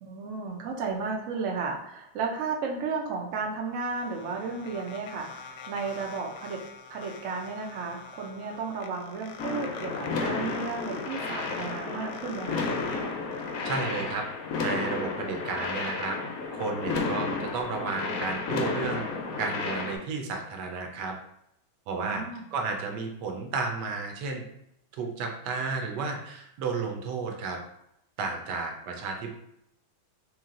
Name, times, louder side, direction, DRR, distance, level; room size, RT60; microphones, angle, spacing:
voice 1, 0.0-6.6 6.9-12.7 22.0-22.4, right 4 dB, 85° right, 0 dB, 0.7 m, -33 dB
sound 1, 3.3-13.8, left 5 dB, 85° left, 1.4 m, -46 dB
sound 2, 9.4-20.0, left 4 dB, 70° left, 0.8 m, -32 dB
voice 2, 13.6-14.2 14.6-16.2 16.5-19.0 19.4-21.1 21.9-22.2 22.5-24.4 24.9-27.6 28.2-29.3, right 4 dB, 70° right, 3 dB, 1.1 m, -32 dB
3.1 x 3.1 x 3.7 m, 0.78 s
omnidirectional pair, 2.3 m